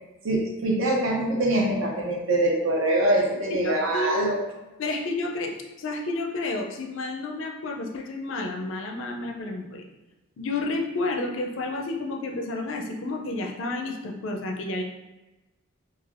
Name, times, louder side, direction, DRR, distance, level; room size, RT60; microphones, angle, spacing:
voice 1, 0.2-4.4, right 1 dB, 70° right, -1 dB, 0.7 m, -24 dB
voice 2, 3.6-4.3 4.8-9.8 10.4-14.8, left 2 dB, 65° left, 2 dB, 0.4 m, -30 dB
3.2 x 2.4 x 2.4 m, 1.1 s
head